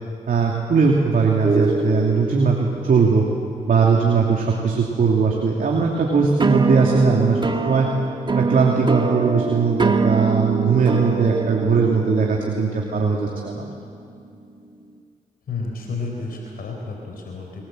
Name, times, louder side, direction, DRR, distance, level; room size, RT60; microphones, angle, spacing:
voice 1, 0.3-3.2 3.7-7.9 8.3-13.7, right 5 dB, 65° right, -1 dB, 2.9 m, -19 dB
sound 1, 1.4-4.8 6.4-15.0, right 3 dB, 30° right, 1.8 m, -25 dB
voice 2, 15.5-17.7, left 3 dB, 75° left, 1 dB, 4.3 m, -31 dB
25.0 x 21.0 x 7.9 m, 2.4 s
cardioid pair, 55°, 15 cm